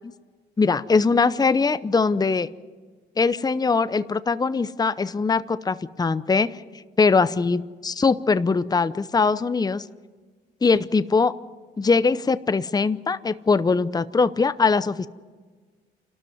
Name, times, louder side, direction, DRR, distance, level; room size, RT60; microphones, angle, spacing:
voice 1, 0.6-2.5 3.2-6.6 7.0-9.8 10.6-11.3 11.8-15.1, left 4 dB, 20° left, 14 dB, 0.7 m, -21 dB
28.5 x 13.0 x 9.4 m, 1.5 s
cardioid pair, 90°, 20 cm